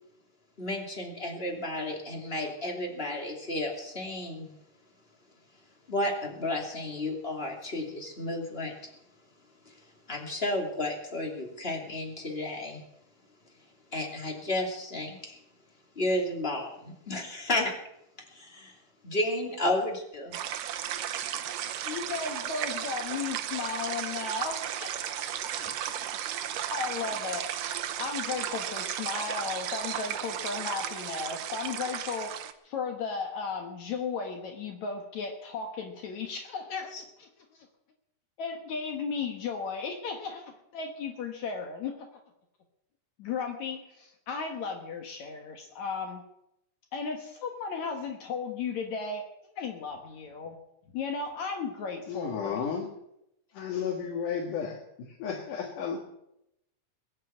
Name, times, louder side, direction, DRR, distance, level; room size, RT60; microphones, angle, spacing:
voice 1, 0.6-4.5 5.9-8.9 9.6-12.8 13.9-15.4 15.9-17.7 18.3-18.7 19.0-20.4, left 1 dB, 20° left, 1 dB, 2.7 m, -32 dB
sound 1, 20.3-32.5, right 10 dB, 70° right, 1.7 m, -34 dB
voice 2, 21.8-25.8 26.7-27.5 28.0-32.3 32.6-37.7 38.4-42.2 43.2-46.2 46.9-50.6 50.9-52.6, left 5 dB, 65° left, 3 dB, 2.6 m, -35 dB
voice 3, 52.1-52.9 53.5-56.0, left 7 dB, 85° left, 0 dB, 3.4 m, -33 dB
21.5 x 7.6 x 7.9 m, 0.81 s
omnidirectional pair, 3.6 m